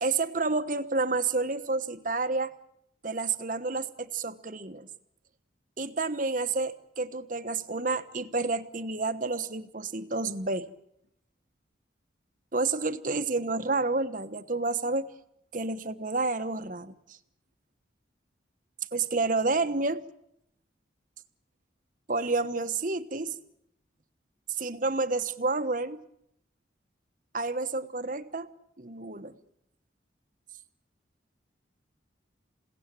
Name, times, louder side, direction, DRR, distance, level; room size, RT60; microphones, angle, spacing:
voice 1, 0.0-2.5 3.0-4.9 5.8-10.7 12.5-15.1 15.5-17.2 18.9-20.1 22.1-23.4 24.6-26.0 27.3-28.5 28.8-29.3, right 3 dB, 45° right, 11 dB, 1.2 m, -30 dB
28.5 x 17.5 x 9.0 m, 0.77 s
head